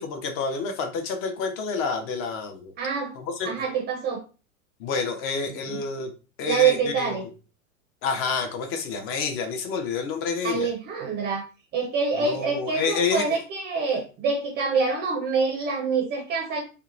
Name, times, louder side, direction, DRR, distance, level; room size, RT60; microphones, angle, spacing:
voice 1, 0.0-2.7 3.2-3.5 4.8-6.1 6.4-7.3 8.0-10.7 12.2-13.3, left 5 dB, 30° left, 5 dB, 0.6 m, -28 dB
voice 2, 2.8-3.1 3.4-4.2 5.5-5.8 6.4-7.3 10.4-11.4 11.7-16.6, right 5 dB, 25° right, 1 dB, 0.5 m, -26 dB
2.8 x 2.1 x 2.4 m, 0.34 s
hypercardioid pair, 100°, 42 cm